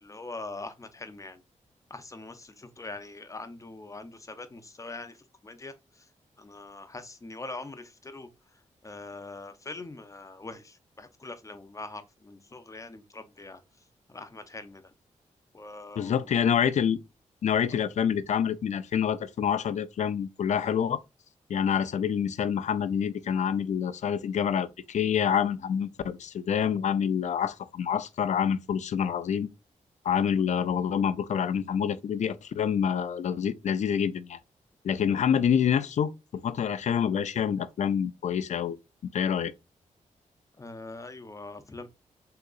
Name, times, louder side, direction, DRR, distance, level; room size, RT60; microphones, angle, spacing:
voice 1, 0.0-1.4 1.9-6.1 6.4-13.6 14.1-14.9 15.5-16.4 17.5-17.8 30.3-30.4 35.1-35.2 40.6-41.9, left 2 dB, 25° left, 0.6 m, -43 dB
voice 2, 16.0-17.0 17.4-21.0 21.5-29.5 30.0-34.4 34.8-38.8 39.1-39.5, left 8 dB, 65° left, 0.4 m, -27 dB
3.7 x 2.8 x 2.4 m
cardioid pair, 60°, 13 cm